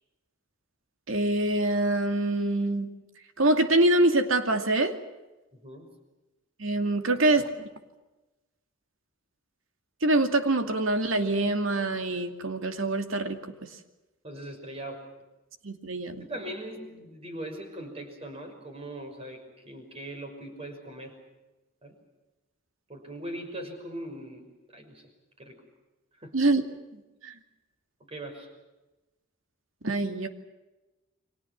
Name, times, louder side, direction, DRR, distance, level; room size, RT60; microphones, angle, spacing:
voice 1, 1.1-2.9 3.4-5.0 6.6-7.5 10.0-13.7 15.6-16.2 26.3-26.6 26.9-27.3 29.8-30.3, right 2 dB, 75° right, 6 dB, 2.6 m, -25 dB
voice 2, 5.5-5.9 7.2-7.5 14.2-15.1 16.2-21.2 21.8-21.9 22.9-25.0 25.4-25.6 26.2-26.4 28.1-28.5, right 1 dB, 30° right, 5 dB, 5.9 m, -40 dB
30.0 x 24.0 x 6.0 m, 1.1 s
head